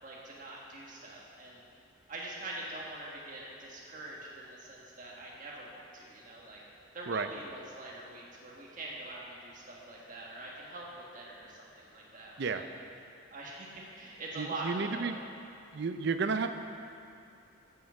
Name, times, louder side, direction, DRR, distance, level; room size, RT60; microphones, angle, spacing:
voice 1, 0.0-1.6 2.1-6.6 6.9-12.6 13.3-15.1, right 2 dB, 40° right, -4 dB, 1.5 m, -44 dB
voice 2, 14.4-15.2 15.7-16.5, right 4 dB, 55° right, 8 dB, 0.5 m, -32 dB
7.7 x 6.5 x 6.9 m, 2.7 s
head